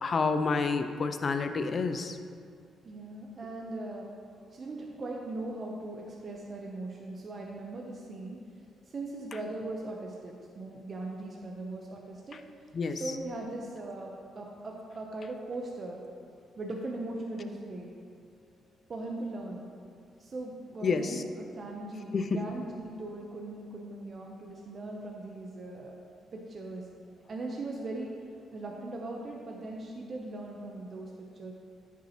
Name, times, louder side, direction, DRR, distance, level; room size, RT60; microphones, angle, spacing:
voice 1, 0.0-2.2 12.7-13.0 20.8-21.2 22.1-22.4, left 4 dB, 45° left, 9 dB, 0.5 m, -29 dB
voice 2, 2.8-4.1 4.5-8.4 8.9-12.4 12.9-16.0 16.6-17.9 18.9-19.6 20.2-21.2 21.5-26.0 26.3-26.9 27.3-28.3 28.5-31.5, right 2 dB, 40° right, -1 dB, 0.8 m, -39 dB
9.7 x 5.9 x 3.0 m, 2.2 s
cardioid pair, 90°, 0 cm